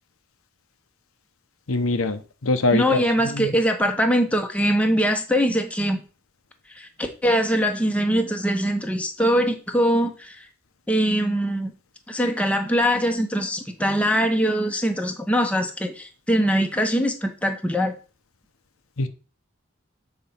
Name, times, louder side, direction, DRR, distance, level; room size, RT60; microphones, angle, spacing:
voice 1, 1.7-3.0 3.3-3.5 19.0-19.1, left 2 dB, 90° left, 0.9 m, -23 dB
voice 2, 2.7-6.0 6.8-10.4 10.9-11.7 12.1-17.9, equal, 5° left, 0.9 m, -22 dB
7.3 x 4.1 x 5.7 m
head